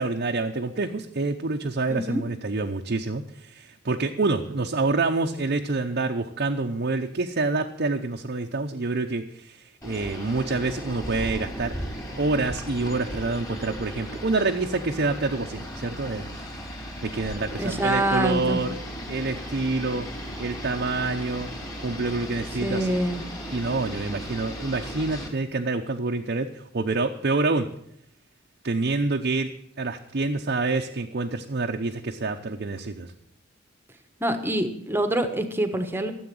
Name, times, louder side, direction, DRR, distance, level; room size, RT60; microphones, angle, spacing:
voice 1, 0.0-11.7 12.2-16.3 17.0-18.7 19.1-20.1 20.4-21.5 21.8-22.9 23.5-27.7 28.6-29.5 29.8-33.1, right 3 dB, 50° right, 2 dB, 0.8 m, -27 dB
voice 2, 1.9-2.2 17.6-18.6 22.6-23.2 34.2-36.1, right 1 dB, 10° right, 8 dB, 1.2 m, -25 dB
sound 1, 9.8-25.3, equal, 15° left, 3.5 m, -36 dB
13.5 x 7.9 x 7.8 m, 0.73 s
head